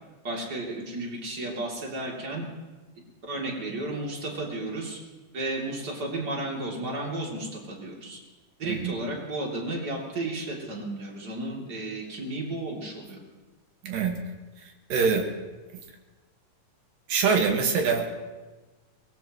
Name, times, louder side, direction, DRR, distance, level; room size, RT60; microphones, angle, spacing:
voice 1, 0.2-2.5 3.2-5.0 5.3-8.2 8.6-13.2, right 2 dB, 30° right, -2 dB, 3.2 m, -33 dB
voice 2, 8.6-8.9 13.8-14.2 14.6-15.3 17.1-18.1, right 5 dB, 90° right, 3 dB, 3.3 m, -24 dB
24.0 x 19.5 x 3.1 m, 1.2 s
omnidirectional pair, 3.8 m